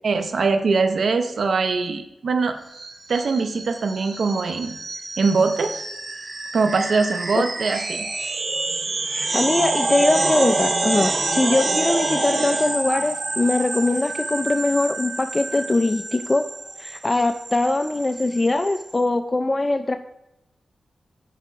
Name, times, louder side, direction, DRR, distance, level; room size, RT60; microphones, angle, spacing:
voice 1, 0.0-2.6 3.1-4.8 5.2-5.7 6.5-8.1, right 4 dB, 70° right, 7 dB, 0.6 m, -22 dB
sound 1, 2.7-18.9, right 2 dB, 50° right, 1.0 m, -27 dB
voice 2, 9.1-16.4 16.8-20.0, left 2 dB, 30° left, 7 dB, 0.4 m, -22 dB
9.2 x 5.6 x 2.5 m, 0.93 s
cardioid pair, 80°, 0 cm